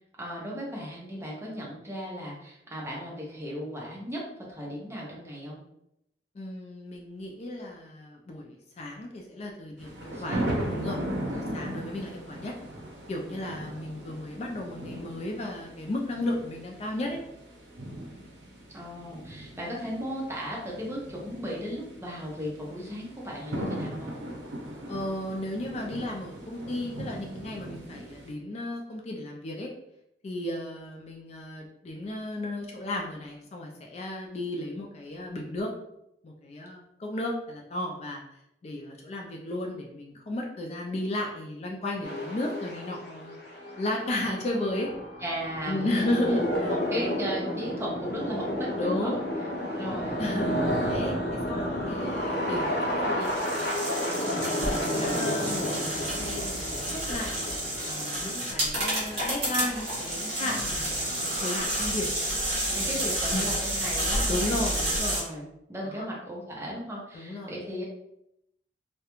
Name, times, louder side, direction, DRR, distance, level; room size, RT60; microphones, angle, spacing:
voice 1, 0.2-4.2 4.5-5.6 10.0-10.5 11.3-11.8 18.7-24.1 45.2-46.2 46.7-49.2 49.7-50.2 60.3-60.9 62.7-64.7 65.1-67.8, equal, 15° right, -4 dB, 0.6 m, -36 dB
voice 2, 6.4-11.0 11.3-12.5 13.1-17.2 24.9-29.7 30.2-35.7 36.2-38.2 38.6-43.3 43.8-44.9 45.7-46.8 48.8-49.3 49.7-53.8 54.2-56.6 56.9-57.3 57.9-62.1 62.8-63.0 63.3-63.5 64.3-65.2 65.8-66.1 67.1-67.5, left 1 dB, 35° left, 0 dB, 0.3 m, -34 dB
sound 1, 9.8-28.3, right 1 dB, 80° right, 0.6 m, -38 dB
sound 2, 42.0-60.1 60.4-61.9, equal, 70° left, 0.7 m, -32 dB
sound 3, 53.2-65.2, right 1 dB, 35° right, 1.1 m, -30 dB
2.4 x 2.1 x 2.9 m, 0.80 s
head